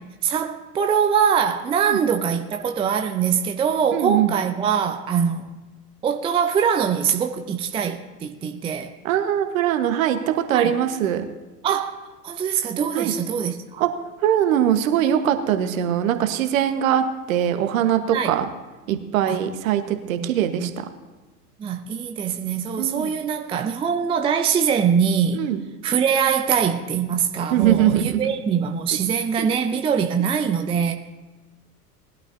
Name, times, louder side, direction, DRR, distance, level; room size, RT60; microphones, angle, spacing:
voice 1, 0.2-5.6 6.0-8.9 10.5-10.7 11.6-12.0 12.2-13.8 18.1-18.3 19.3-19.4 20.0-20.7 21.6-25.4 25.8-30.9, right 7 dB, 10° right, 6 dB, 0.5 m, -23 dB
voice 2, 3.9-4.3 9.0-11.2 12.9-13.1 13.8-13.9 14.2-18.5 18.9-20.7 22.8-23.1 25.3-25.6 27.5-28.3 29.4-29.5, right 10 dB, 55° right, 8 dB, 1.3 m, -21 dB
20.0 x 12.0 x 2.7 m, 1.2 s
figure-of-eight pair, 85°, 47 cm